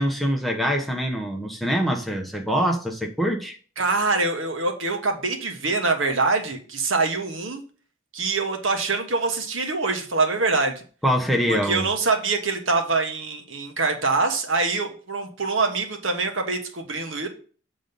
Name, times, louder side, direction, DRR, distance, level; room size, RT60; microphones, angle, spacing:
voice 1, 0.0-3.6 11.0-11.9, equal, ahead, 0.9 m, -24 dB
voice 2, 3.8-7.6 8.1-10.8 11.5-17.3, right 3 dB, 70° right, 1.3 m, -24 dB
8.0 x 3.9 x 5.3 m
head